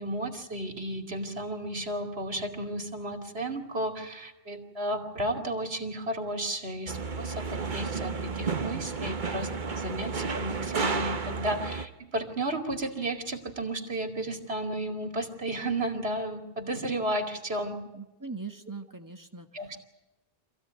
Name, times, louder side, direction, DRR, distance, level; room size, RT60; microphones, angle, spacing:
voice 1, 0.0-17.8 19.5-19.8, right 1 dB, 85° right, 4 dB, 3.0 m, -33 dB
sound 1, 6.9-11.8, right 4 dB, 50° right, 1.2 m, -32 dB
voice 2, 17.9-19.8, right 4 dB, 20° right, 6 dB, 1.6 m, -41 dB
26.0 x 16.0 x 9.5 m, 0.98 s
omnidirectional pair, 1.0 m